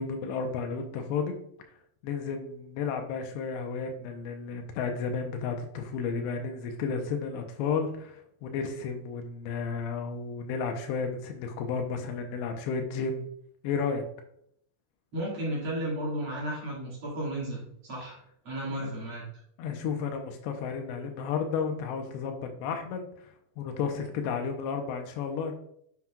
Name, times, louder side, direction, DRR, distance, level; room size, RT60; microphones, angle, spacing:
voice 1, 0.0-1.4 2.0-13.3 13.6-14.1 18.7-18.9 19.6-23.1 23.6-25.5, left 5 dB, 85° left, 4 dB, 2.6 m, -32 dB
voice 2, 15.1-18.2 18.4-19.2, right 1 dB, 55° right, -6 dB, 1.4 m, -33 dB
7.7 x 7.2 x 2.3 m, 0.70 s
omnidirectional pair, 5.8 m